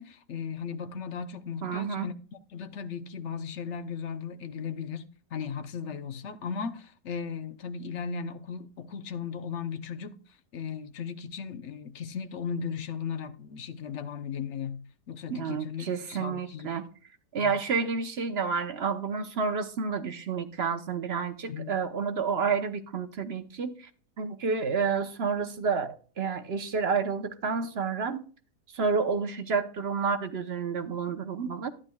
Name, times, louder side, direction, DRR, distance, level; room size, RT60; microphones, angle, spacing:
voice 1, 0.0-2.1 2.5-10.2 10.5-14.8 15.1-16.7 17.4-17.6 21.5-21.7, left 6 dB, 50° left, 1.1 m, -36 dB
voice 2, 1.6-2.1 15.3-16.8 17.3-23.9 24.2-28.2 28.7-31.7, right 5 dB, 45° right, 1.0 m, -30 dB
12.0 x 9.9 x 2.3 m
omnidirectional pair, 1.7 m